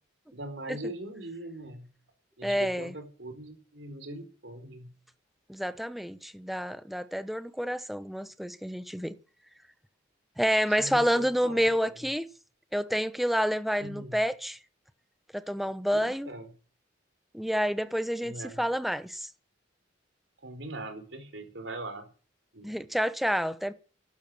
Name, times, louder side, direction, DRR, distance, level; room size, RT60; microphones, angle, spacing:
voice 1, 0.3-1.9 2.4-4.9 10.7-11.7 13.8-14.2 15.9-16.5 18.2-18.6 20.4-22.1 22.5-22.8, right 2 dB, 65° right, 4.6 m, -41 dB
voice 2, 2.4-2.9 5.5-9.1 10.4-12.3 12.7-14.6 15.3-16.3 17.3-19.3 22.6-23.7, equal, ahead, 1.0 m, -29 dB
12.5 x 12.5 x 7.9 m
head